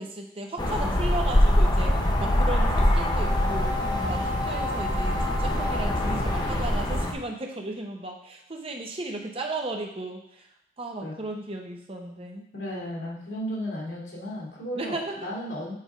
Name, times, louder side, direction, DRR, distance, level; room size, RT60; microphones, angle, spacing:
voice 1, 0.0-1.9 2.2-3.7 4.1-10.5 10.8-12.5 14.7-15.3, right 2 dB, 35° right, 2 dB, 0.9 m, -35 dB
sound 1, 0.6-7.1, left 1 dB, 25° left, 0.8 m, -24 dB
voice 2, 0.8-1.1 1.8-2.4 3.9-4.3 11.0-11.1 12.5-15.7, equal, 85° left, -4 dB, 2.3 m, -35 dB
Brass instrument, 2.6-7.0, left 2 dB, 10° right, 2.1 m, -34 dB
7.6 x 3.5 x 4.9 m, 0.73 s
head